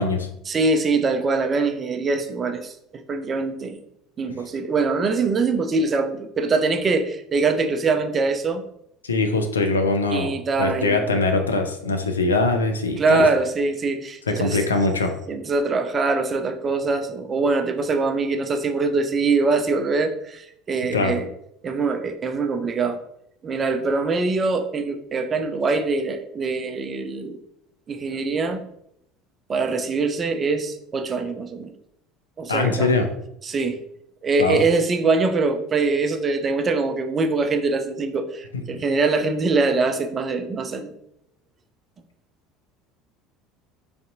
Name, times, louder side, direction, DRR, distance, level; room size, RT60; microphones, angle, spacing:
voice 1, 0.5-3.8 4.2-8.6 10.1-11.0 13.0-14.8 15.3-21.3 21.6-23.0 23.4-27.4 27.9-28.6 29.5-31.7 32.4-32.9 33.4-33.8 34.2-40.9, right 3 dB, 30° right, 6 dB, 0.4 m, -23 dB
voice 2, 9.0-10.3 10.6-13.2 14.3-15.1 20.9-21.1 32.5-33.1 34.4-34.6 38.7-38.8, left 3 dB, 80° left, 5 dB, 0.4 m, -22 dB
3.3 x 2.6 x 2.6 m, 0.75 s
figure-of-eight pair, 65°, 0 cm